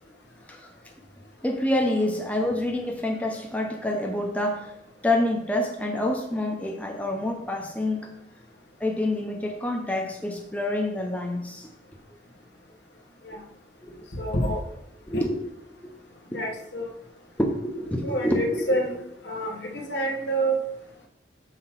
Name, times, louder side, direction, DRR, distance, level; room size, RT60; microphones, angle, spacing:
voice 1, 1.4-4.8 5.0-8.1 8.8-11.7 13.8-14.1 15.1-15.4 17.4-18.8, left 1 dB, 10° left, 1 dB, 0.8 m, -27 dB
voice 2, 14.1-14.6 15.1-15.3 16.3-16.9 18.0-18.9 19.2-20.6, right 1 dB, 75° left, 1 dB, 1.1 m, -27 dB
5.8 x 4.3 x 5.8 m, 0.83 s
head